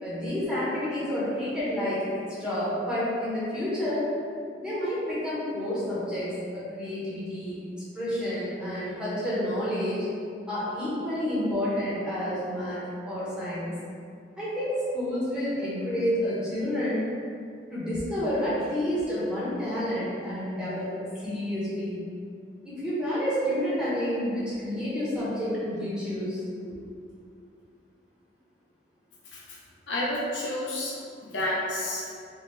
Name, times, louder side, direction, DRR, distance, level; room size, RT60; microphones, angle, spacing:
voice 1, 0.0-4.1 4.6-7.6 7.9-10.0 10.5-12.8 13.1-13.7 14.4-17.1 17.7-22.0 22.6-26.4 26.6-26.7, equal, 5° right, -11 dB, 1.4 m, -29 dB
voice 2, 29.9-31.0 31.2-32.0, left 1 dB, 85° left, -5 dB, 1.0 m, -30 dB
5.5 x 2.8 x 3.2 m, 2.4 s
head